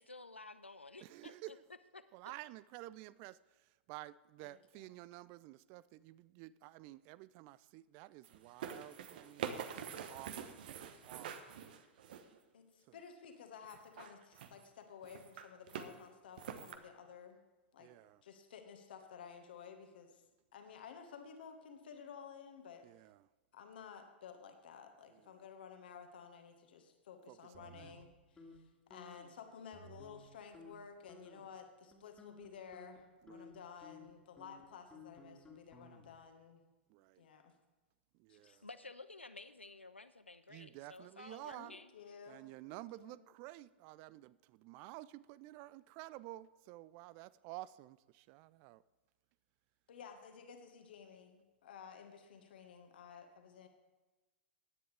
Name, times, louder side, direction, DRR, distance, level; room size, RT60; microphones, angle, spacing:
voice 1, 0.0-1.6 1.9-2.1 38.5-41.9, left 3 dB, 85° left, 14 dB, 0.6 m, -53 dB
voice 2, 1.0-1.6 2.1-9.8 10.1-10.5 11.1-11.4 12.9-13.0 17.8-18.2 22.8-23.3 25.1-25.3 27.3-27.9 33.2-33.5 36.9-37.3 38.2-38.7 40.5-41.7 42.3-48.8, right 17 dB, 35° right, 19 dB, 0.3 m, -52 dB
voice 3, 4.4-4.9 12.5-17.4 17.7-17.9 18.2-20.2 20.5-22.9 23.5-36.6 37.2-37.5 38.3-38.6 41.6-43.2 49.9-53.7, left 7 dB, 55° left, 6 dB, 1.6 m, -54 dB
sound 1, 8.2-12.4 13.6-14.7 15.0-15.9 16.4-16.8, right 8 dB, 50° right, 1.0 m, -45 dB
sound 2, 27.5-28.6 28.9-29.3 29.7-30.3 30.5-30.8 31.1-31.5 31.9-36.3, left 2 dB, 10° left, 2.1 m, -57 dB
16.0 x 10.0 x 3.4 m, 1.2 s
figure-of-eight pair, 100°, 6 cm